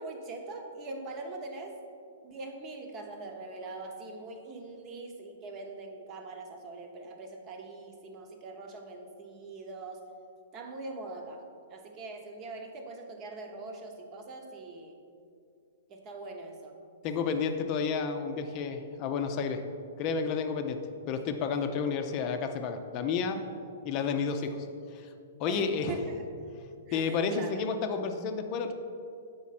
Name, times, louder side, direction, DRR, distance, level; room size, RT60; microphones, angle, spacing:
voice 1, 0.0-1.8 2.2-10.1 10.5-11.4 11.7-15.0 15.9-16.8 25.5-26.2 26.9-27.7, right 2 dB, 30° right, 3 dB, 1.0 m, -42 dB
voice 2, 17.0-19.6 20.0-23.4 23.8-24.7 24.9-25.1 25.4-26.0 26.9-28.7, left 5 dB, 40° left, 6 dB, 0.6 m, -31 dB
7.1 x 5.2 x 4.2 m, 2.5 s
hypercardioid pair, 125°, 0 cm